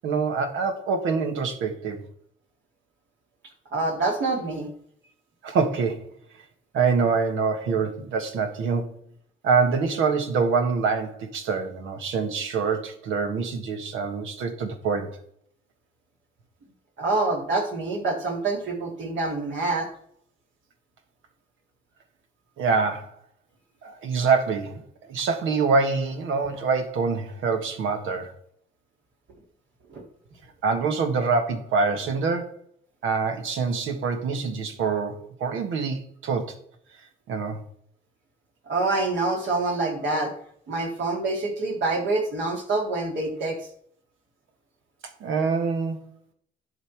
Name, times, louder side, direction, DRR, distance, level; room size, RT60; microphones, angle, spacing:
voice 1, 0.0-2.0 5.4-6.0 6.7-8.9 9.4-15.1 22.6-23.1 23.8-24.8 25.1-28.3 30.6-32.5 33.0-36.5 37.3-37.6 45.2-46.0, right 5 dB, 85° right, 6 dB, 1.6 m, -25 dB
voice 2, 3.7-4.7 17.0-19.9 29.9-30.0 38.7-40.3 40.7-43.7, right 3 dB, 70° right, 0 dB, 3.4 m, -26 dB
11.0 x 5.3 x 4.7 m, 0.64 s
cardioid pair, 90°, 20 cm